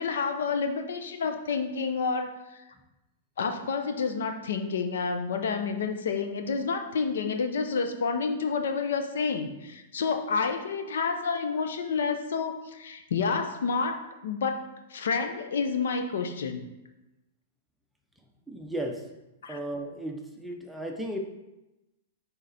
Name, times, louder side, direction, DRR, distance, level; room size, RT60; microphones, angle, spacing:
voice 1, 0.0-2.6 3.4-14.6 14.9-16.7 19.4-19.6, left 5 dB, 80° left, 7 dB, 0.7 m, -29 dB
voice 2, 18.5-19.1 19.5-21.2, right 1 dB, ahead, 1 dB, 0.7 m, -35 dB
6.2 x 3.9 x 4.2 m, 0.98 s
hypercardioid pair, 140°, 0 cm